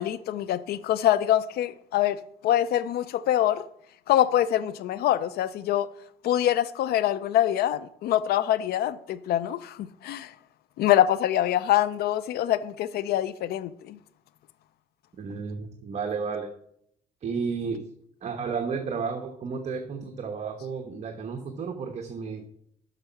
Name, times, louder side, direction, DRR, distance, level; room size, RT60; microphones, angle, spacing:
voice 1, 0.0-3.7 4.1-5.9 6.2-10.3 10.8-14.0, left 12 dB, 70° left, 0.5 m, -25 dB
voice 2, 15.2-16.5 17.2-17.8 18.2-22.4, right 5 dB, 40° right, 1.1 m, -32 dB
8.0 x 6.0 x 5.7 m
cardioid pair, 110°, 17 cm